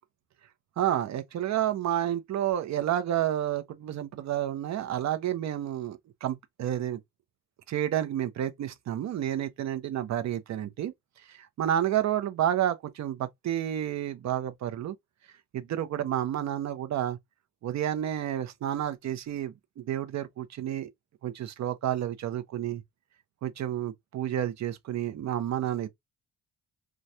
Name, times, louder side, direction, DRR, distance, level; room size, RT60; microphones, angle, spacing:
voice 1, 0.8-7.0 7.7-10.9 11.6-14.9 15.5-17.2 17.6-20.9 21.2-22.8 23.4-25.9, right 11 dB, 65° right, 0.7 m, -30 dB
3.1 x 2.2 x 2.7 m
cardioid pair, 90°, 30 cm